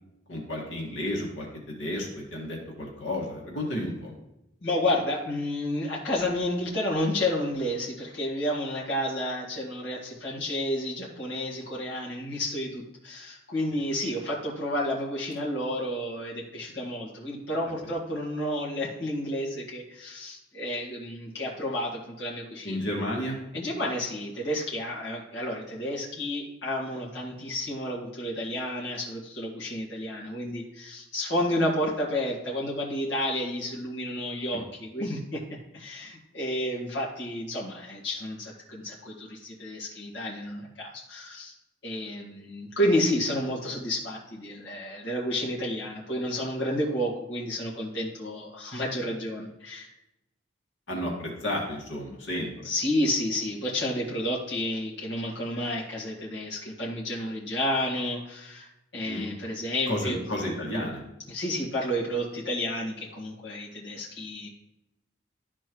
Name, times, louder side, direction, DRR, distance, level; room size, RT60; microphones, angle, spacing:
voice 1, 0.3-4.1 22.6-23.4 50.9-52.5 59.1-59.3 59.9-61.0, left 1 dB, 80° left, -2 dB, 1.9 m, -32 dB
voice 2, 4.6-22.8 23.5-35.4 35.7-41.5 41.8-49.9 52.6-60.2 61.3-64.5, left 1 dB, 65° left, -5 dB, 1.8 m, -31 dB
12.5 x 4.4 x 3.0 m, 0.89 s
head